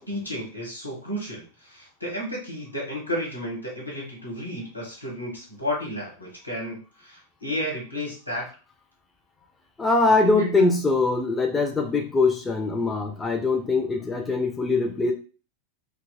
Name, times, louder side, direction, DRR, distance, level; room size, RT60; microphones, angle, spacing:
voice 1, 0.0-8.4 10.0-10.6, left 1 dB, 90° left, -4 dB, 1.3 m, -33 dB
voice 2, 9.8-15.1, left 3 dB, 15° left, 3 dB, 0.5 m, -22 dB
3.9 x 2.4 x 2.2 m, 0.36 s
figure-of-eight pair, 90°, 0 cm